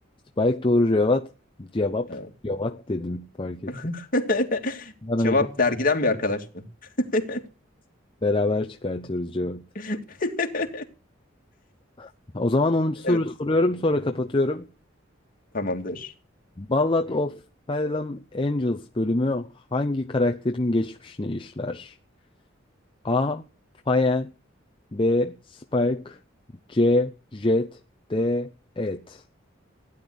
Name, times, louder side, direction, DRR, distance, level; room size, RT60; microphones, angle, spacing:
voice 1, 0.4-1.3 1.6-2.1 2.4-3.7 5.0-5.5 8.2-9.6 12.0-12.1 12.3-14.6 16.6-17.4 17.7-21.9 23.0-23.4 23.9-24.3 24.9-26.2 26.7-27.8 28.1-28.5 28.8-29.2, left 2 dB, 25° left, 0.8 m, -24 dB
voice 2, 3.7-4.9 5.2-6.6 7.1-7.4 9.8-10.8 13.0-13.2 15.5-16.1, left 2 dB, 45° left, 2.6 m, -26 dB
16.0 x 10.0 x 8.1 m
head